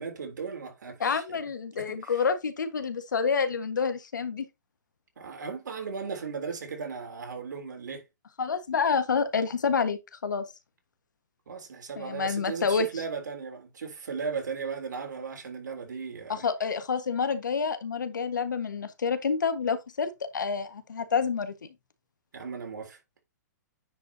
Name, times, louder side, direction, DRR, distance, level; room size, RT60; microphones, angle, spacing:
voice 1, 0.0-1.2 1.8-2.2 5.2-8.1 11.5-16.5 22.3-23.0, right 5 dB, 80° right, 3.5 m, -36 dB
voice 2, 1.0-4.4 8.4-10.4 12.0-12.9 16.3-21.7, left 5 dB, 90° left, 1.6 m, -28 dB
9.7 x 5.3 x 2.8 m
hypercardioid pair, 130°, 10 cm